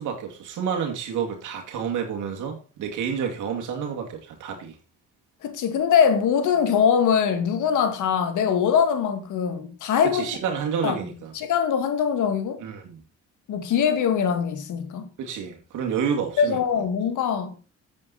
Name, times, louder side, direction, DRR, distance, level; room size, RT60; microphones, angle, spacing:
voice 1, 0.0-4.8 10.0-11.3 12.6-13.0 15.2-16.6, right 7 dB, 80° right, 2.2 m, -29 dB
voice 2, 5.4-10.3 10.8-11.0 11.3-12.6 13.5-15.1 16.4-17.5, left 7 dB, 80° left, 1.9 m, -22 dB
8.8 x 7.5 x 4.0 m
cardioid pair, 90°, 30 cm